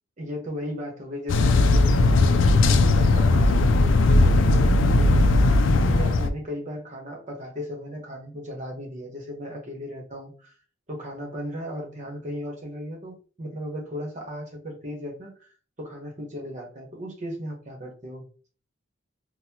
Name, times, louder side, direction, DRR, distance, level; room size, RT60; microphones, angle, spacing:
voice 1, 0.2-5.3 5.8-10.6 10.9-18.3, equal, 40° right, 1 dB, 1.0 m, -36 dB
sound 1, 1.3-6.3, left 2 dB, 75° left, 0.4 m, -18 dB
4.0 x 2.1 x 2.8 m, 0.39 s
head